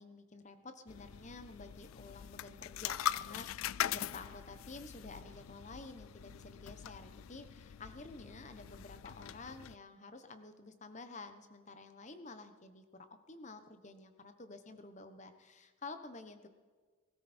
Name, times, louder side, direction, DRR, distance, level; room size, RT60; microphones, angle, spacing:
voice 1, 0.0-12.8 13.3-16.5, left 3 dB, 35° left, 9 dB, 1.1 m, -50 dB
sound 1, 0.9-9.7, left 11 dB, 75° left, 0.4 m, -42 dB
20.0 x 13.5 x 4.4 m, 1.5 s
head